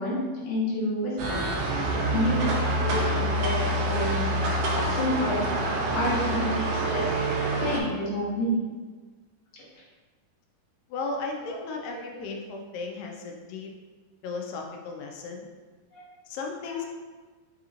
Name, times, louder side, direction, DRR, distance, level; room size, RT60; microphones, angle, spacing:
voice 1, 0.0-1.4 2.1-5.4 5.9-7.0 7.6-8.7 11.4-11.6 15.9-16.0 16.6-16.8, equal, 60° left, -8 dB, 1.4 m, -29 dB
sound 1, 1.2-7.8, right 1 dB, 85° right, 2.2 m, -26 dB
voice 2, 10.9-13.7 14.2-15.5 16.3-16.9, left 4 dB, 85° left, 1 dB, 2.1 m, -35 dB
5.5 x 2.9 x 2.4 m, 1.3 s
omnidirectional pair, 3.8 m